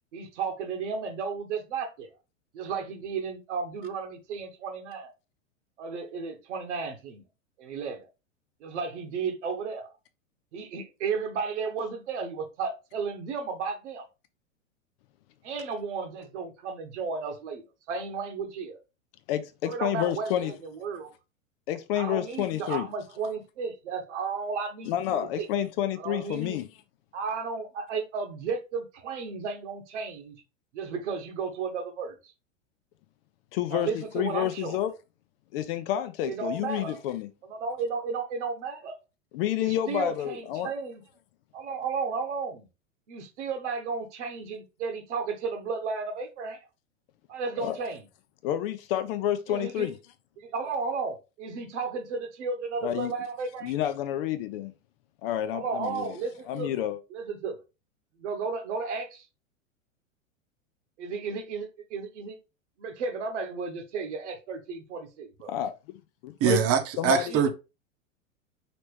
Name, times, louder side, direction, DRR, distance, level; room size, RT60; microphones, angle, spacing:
voice 1, 0.1-2.1 2.5-5.1 5.8-7.2 7.6-8.1 8.6-9.9 10.5-14.0 15.4-18.8 19.7-21.1 21.9-25.5 26.0-26.6 27.1-30.4 30.7-32.3 33.7-34.8 36.2-37.0 37.5-39.0 39.6-41.0 41.5-42.7 43.1-46.6 47.3-48.0 49.5-49.9 50.4-53.7 55.5-56.7 57.1-57.6 58.2-59.3 61.0-62.4 62.8-65.5 67.3-67.5, right 5 dB, 65° right, 1.3 m, -33 dB
voice 2, 19.3-20.5 21.7-22.9 24.9-26.7 33.5-34.9 35.5-37.3 39.3-40.7 47.6-47.8 48.4-50.0 52.8-53.1 53.6-54.7 55.2-56.2 56.5-57.0 65.5-65.7 66.2-66.6 67.0-67.5, left 11 dB, 50° left, 0.6 m, -29 dB
voice 3, 66.4-67.5, right 8 dB, 35° right, 1.0 m, -23 dB
5.1 x 2.9 x 3.3 m
hypercardioid pair, 100°, 39 cm